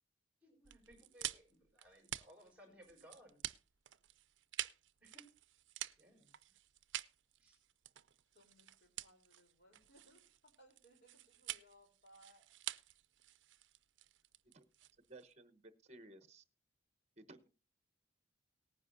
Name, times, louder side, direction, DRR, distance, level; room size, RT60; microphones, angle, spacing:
voice 1, 0.4-3.4 5.0-5.3 6.0-6.6 7.4-7.6, equal, 5° right, 1 dB, 4.8 m, -62 dB
sound 1, 0.6-15.3, right 14 dB, 75° right, 0.5 m, -48 dB
voice 2, 8.3-12.5, equal, 60° left, 4 dB, 3.8 m, -66 dB
voice 3, 15.1-16.4 17.2-17.5, right 2 dB, 35° right, 10 dB, 1.1 m, -57 dB
18.5 x 10.0 x 2.7 m, 0.32 s
head